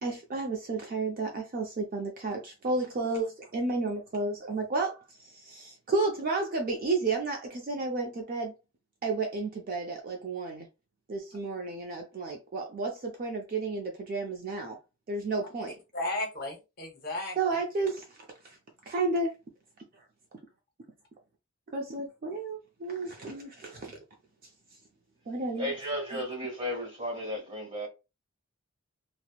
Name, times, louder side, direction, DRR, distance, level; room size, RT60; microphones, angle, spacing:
voice 1, 0.0-8.5 9.0-10.7 11.1-14.8 15.1-15.7 17.4-18.0 18.4-18.6 18.9-19.3 21.7-24.0 25.3-25.7 26.1-26.2, right 3 dB, 40° right, 0.4 m, -32 dB
voice 2, 15.9-17.6, left 2 dB, 45° left, 0.8 m, -34 dB
voice 3, 25.6-27.9, equal, 25° right, 1.5 m, -34 dB
2.9 x 2.0 x 2.2 m
head